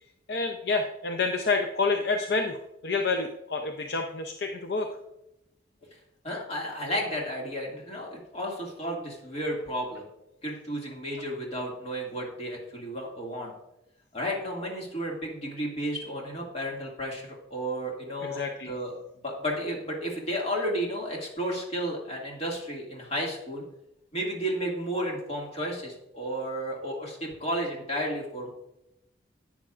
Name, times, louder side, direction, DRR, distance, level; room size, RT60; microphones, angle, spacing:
voice 1, 0.3-4.9 18.2-18.7, left 3 dB, 60° left, 4 dB, 0.6 m, -28 dB
voice 2, 6.2-10.0 10.4-13.5 14.1-19.0 19.2-23.6 24.1-28.5, equal, 35° left, -2 dB, 2.1 m, -32 dB
11.5 x 8.7 x 2.5 m, 0.86 s
head